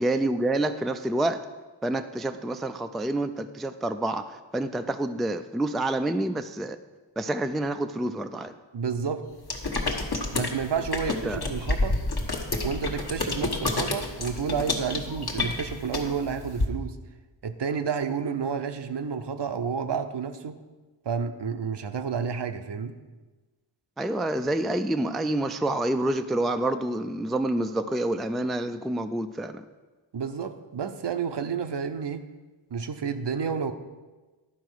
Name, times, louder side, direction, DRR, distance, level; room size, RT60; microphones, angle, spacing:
voice 1, 0.0-1.4 1.8-6.8 7.2-8.5 11.2-11.4 24.0-29.6, right 1 dB, ahead, 8 dB, 0.3 m, -28 dB
voice 2, 8.7-9.2 10.3-12.0 12.6-17.0 17.4-20.6 21.0-23.0 30.1-32.3 32.7-33.7, right 6 dB, 65° right, 9 dB, 0.7 m, -30 dB
sound 1, 9.5-16.6, left 2 dB, 55° left, 1.3 m, -29 dB
11.5 x 4.6 x 6.2 m, 1.3 s
wide cardioid pair, 60°, 46 cm